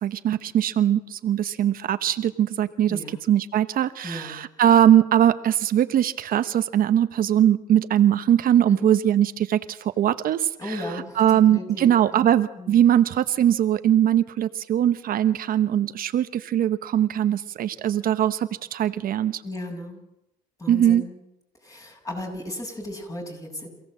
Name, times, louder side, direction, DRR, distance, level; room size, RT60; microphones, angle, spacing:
voice 1, 0.0-3.0 3.3-10.8 11.2-19.4 20.7-21.1, right 10 dB, 60° right, 11 dB, 1.0 m, -21 dB
voice 2, 2.9-3.2 4.0-4.4 8.7-9.0 10.6-12.3 12.6-12.8 19.4-20.0 20.6-21.2 21.6-23.7, left 1 dB, 20° left, 3 dB, 6.7 m, -35 dB
27.0 x 17.0 x 7.5 m, 0.86 s
cardioid pair, 110°, 17 cm